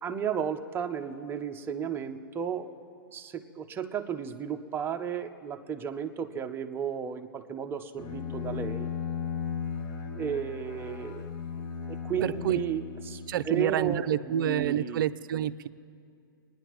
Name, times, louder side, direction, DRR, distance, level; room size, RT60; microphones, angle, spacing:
voice 1, 0.0-2.8 3.1-8.9 10.2-11.3 11.9-15.0, right 7 dB, 20° right, 5 dB, 0.7 m, -34 dB
Bowed string instrument, 8.0-13.8, left 6 dB, 25° left, 1.0 m, -36 dB
voice 2, 12.2-12.6 13.3-15.7, right 10 dB, 65° right, 13 dB, 0.4 m, -28 dB
28.5 x 10.0 x 3.1 m, 2.5 s
hypercardioid pair, 125°, 12 cm